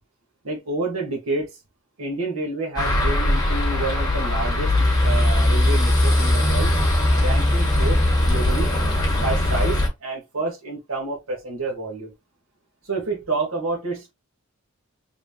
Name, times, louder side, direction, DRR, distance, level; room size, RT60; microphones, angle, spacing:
voice 1, 0.4-1.5 2.0-6.7 7.2-8.7 9.1-12.1 12.8-14.1, right 3 dB, 75° right, 1.6 m, -29 dB
sound 1, 2.8-9.9, left 1 dB, 20° left, 1.5 m, -20 dB
3.7 x 3.6 x 2.3 m
head